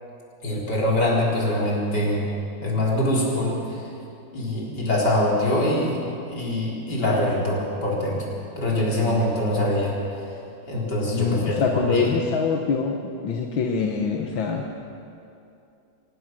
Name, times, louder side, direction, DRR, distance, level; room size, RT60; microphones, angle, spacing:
voice 1, 0.4-2.3 2.6-3.6 4.3-6.0 6.3-8.2 8.6-10.0 10.7-12.1, left 1 dB, 60° left, -4 dB, 4.6 m, -23 dB
voice 2, 11.1-14.7, left 5 dB, 90° left, 2 dB, 1.9 m, -25 dB
25.0 x 18.0 x 6.2 m, 2.6 s
omnidirectional pair, 2.1 m